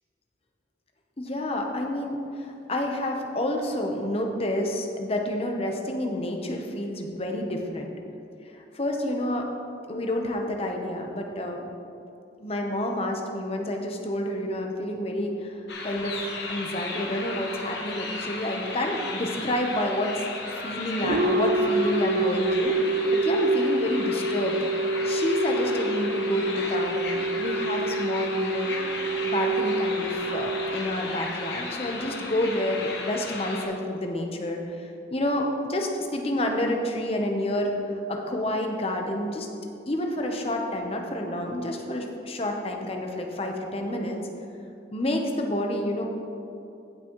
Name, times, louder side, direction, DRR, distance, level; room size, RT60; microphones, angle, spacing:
voice 1, 1.2-7.9 8.5-9.5 9.9-11.6 12.4-20.2 20.6-24.6 25.0-28.9 29.2-37.7 38.1-39.5 39.9-44.2 44.9-46.1, left 1 dB, 35° left, 2 dB, 0.9 m, -29 dB
sound 1, 15.7-33.7, left 3 dB, 70° left, 1.2 m, -35 dB
sound 2, 21.0-31.7, right 2 dB, 55° right, 0.4 m, -27 dB
16.0 x 6.1 x 3.1 m, 2.8 s
head